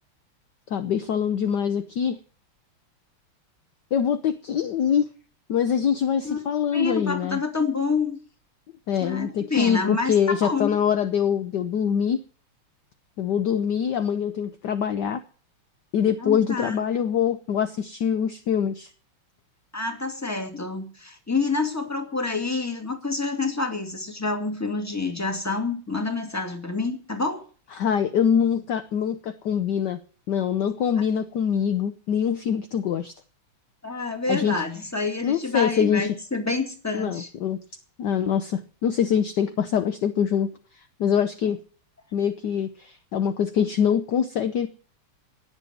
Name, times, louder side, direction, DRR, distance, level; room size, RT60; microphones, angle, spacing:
voice 1, 0.7-2.2 3.9-5.1 5.5-7.4 8.9-12.2 13.2-15.2 15.9-18.9 27.8-30.0 30.3-33.1 34.3-34.5 35.2-36.1 36.9-37.6 38.0-40.5 41.0-41.6 42.1-44.7, left 8 dB, 65° left, 10 dB, 1.2 m, -24 dB
voice 2, 6.7-8.2 9.0-10.8 16.2-16.8 19.7-27.4 33.8-37.3, left 3 dB, 5° left, 4 dB, 2.2 m, -28 dB
18.5 x 7.0 x 7.8 m, 0.42 s
omnidirectional pair, 2.4 m